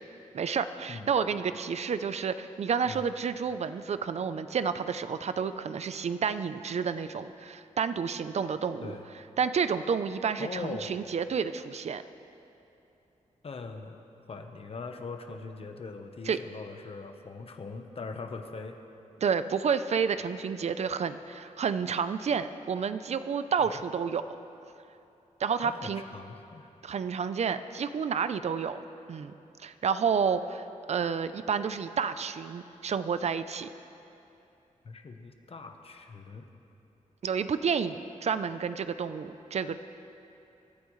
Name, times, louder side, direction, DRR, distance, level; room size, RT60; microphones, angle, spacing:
voice 1, 0.3-8.9 9.4-12.0 16.3-16.4 19.2-24.2 25.4-26.0 26.8-28.8 29.1-29.3 29.6-33.7 37.2-39.8, right 6 dB, 55° right, 11 dB, 0.5 m, -30 dB
voice 2, 10.4-11.1 13.4-14.0 14.3-18.8 23.6-23.8 25.6-26.7 31.6-31.8 34.8-36.5, left 4 dB, 45° left, 5 dB, 1.0 m, -41 dB
25.0 x 13.5 x 3.2 m, 2.8 s
wide cardioid pair, 135°, 13 cm